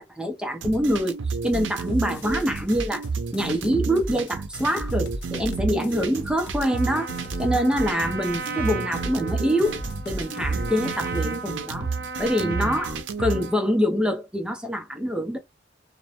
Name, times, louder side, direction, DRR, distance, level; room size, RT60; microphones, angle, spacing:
voice 1, 0.0-3.0 3.3-7.1 7.4-9.8 10.1-11.9 12.2-15.4, equal, 5° right, 0.5 m, -25 dB
sound 1, 0.6-13.5, right 4 dB, 90° right, 0.5 m, -31 dB
sound 2, 1.5-3.1 3.3-4.3 4.6-8.1 8.3-9.3 9.6-11.5, equal, 75° left, 0.7 m, -37 dB
Trumpet, 6.5-13.7, right 4 dB, 55° right, 0.8 m, -36 dB
2.5 x 2.1 x 2.8 m
head